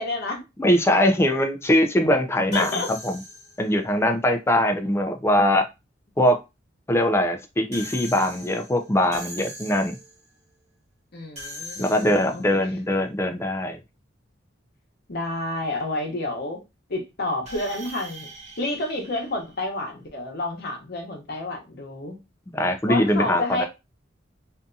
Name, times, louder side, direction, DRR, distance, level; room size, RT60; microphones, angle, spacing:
voice 1, 0.0-0.4 2.5-2.9 11.1-12.4 15.1-16.6 16.9-18.3 18.6-22.2 22.9-23.6, left 2 dB, 55° left, 0.9 m, -29 dB
voice 2, 0.6-3.2 3.6-5.7 6.2-6.4 6.9-10.0 11.8-13.8 22.5-23.6, left 1 dB, 15° left, 0.4 m, -22 dB
sound 1, 2.5-3.8 7.7-10.2 11.3-12.6 17.4-20.0, equal, 35° right, 1.1 m, -41 dB
2.6 x 2.6 x 2.3 m
head